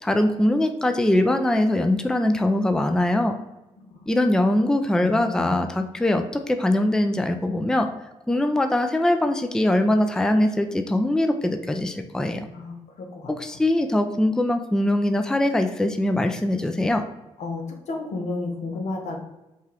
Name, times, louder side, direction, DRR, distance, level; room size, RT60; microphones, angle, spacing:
voice 1, 0.0-3.3 4.1-7.9 8.3-12.5 13.4-17.0, left 1 dB, 5° left, 7 dB, 0.4 m, -22 dB
voice 2, 5.0-5.6 12.5-13.6 17.4-19.2, left 3 dB, 70° left, 3 dB, 0.9 m, -33 dB
5.3 x 2.5 x 3.3 m, 0.98 s
supercardioid pair, 60°, 12 cm